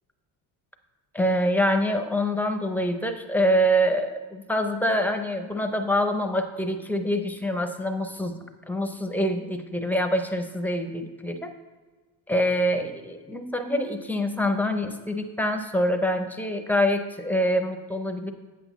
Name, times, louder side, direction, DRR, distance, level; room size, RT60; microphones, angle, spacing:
voice 1, 1.1-8.4 8.7-11.5 12.3-18.3, equal, 5° left, 6 dB, 0.5 m, -25 dB
8.6 x 8.2 x 4.0 m, 1.4 s
cardioid pair, 160°, 39 cm